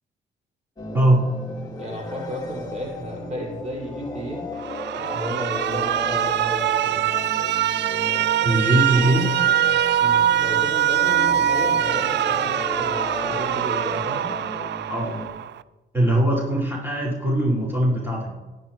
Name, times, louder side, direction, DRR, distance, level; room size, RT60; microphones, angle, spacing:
sound 1, 0.8-15.3, left 2 dB, 20° left, 2.1 m, -34 dB
voice 1, 0.9-1.2 8.4-9.4 14.9-15.1 15.9-18.3, right 1 dB, 10° right, -5 dB, 5.1 m, -21 dB
voice 2, 1.8-4.5 5.0-7.0 10.0-14.3, right 1 dB, 35° right, -2 dB, 5.2 m, -33 dB
Alarm, 4.6-15.6, right 11 dB, 60° right, 0.5 m, -23 dB
21.5 x 10.5 x 3.1 m, 1.2 s
cardioid pair, 90°, 20 cm